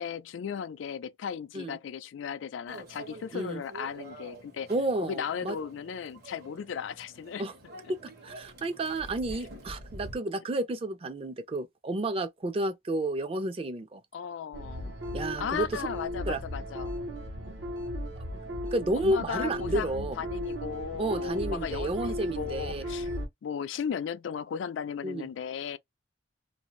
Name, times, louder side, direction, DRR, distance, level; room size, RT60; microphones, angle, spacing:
voice 1, 0.0-4.7 5.0-7.4 14.1-15.0 15.4-16.9 18.9-23.1 23.4-25.8, left 7 dB, 85° left, 0.3 m, -36 dB
Microwave oven, 2.7-10.2, right 2 dB, 55° right, 1.0 m, -47 dB
voice 2, 4.7-5.6 7.4-7.5 7.9-14.0 15.1-15.8 16.3-16.4 18.7-20.2 21.0-22.8 25.0-25.3, right 2 dB, 30° right, 0.4 m, -31 dB
sound 1, 14.5-23.3, equal, 80° right, 1.1 m, -36 dB
2.6 x 2.3 x 3.1 m
head